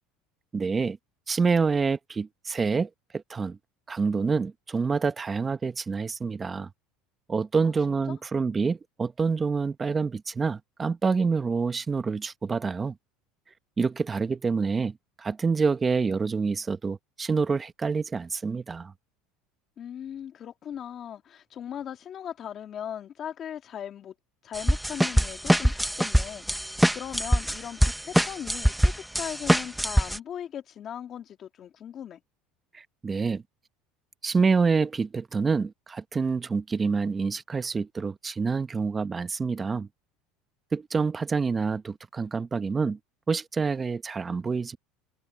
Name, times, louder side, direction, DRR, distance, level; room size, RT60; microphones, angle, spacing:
voice 1, 0.5-1.0 1.3-3.6 3.9-6.7 7.3-12.9 13.8-18.9 32.7-33.4 34.2-39.9 40.7-43.0 43.3-44.8, right 5 dB, 20° right, 1.2 m, -27 dB
voice 2, 7.5-8.2 19.8-24.1 24.4-32.2, left 9 dB, 40° left, 2.1 m, -39 dB
sound 1, 24.5-30.2, equal, ahead, 1.0 m, -23 dB
supercardioid pair, 115°, 0 cm